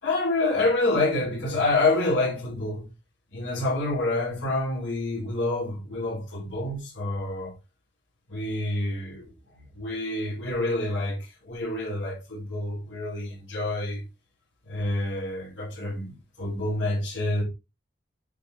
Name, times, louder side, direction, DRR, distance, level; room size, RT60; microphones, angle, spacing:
voice 1, 0.0-2.9 3.3-7.5 8.3-9.3 9.7-14.0 14.6-17.4, left 2 dB, 65° left, 3.3 m, -27 dB
8.4 x 4.5 x 3.8 m
head